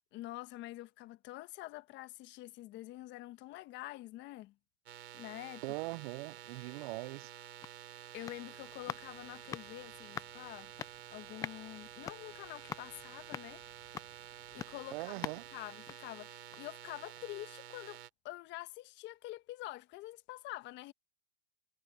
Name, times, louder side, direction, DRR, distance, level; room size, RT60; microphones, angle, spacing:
voice 1, 0.0-4.5 5.1-5.6 8.1-10.7 11.1-13.6 14.5-15.1 15.5-20.9, left 17 dB, 35° left, 1.3 m, -47 dB
sound 1, 4.9-18.1, right 11 dB, 80° right, 6.0 m, -51 dB
voice 2, 5.6-7.3 14.9-15.4, right 22 dB, 50° right, 0.5 m, -41 dB
sound 2, 7.6-16.8 17.1-17.2, left 9 dB, 10° left, 0.3 m, -47 dB
hypercardioid pair, 130°, 32 cm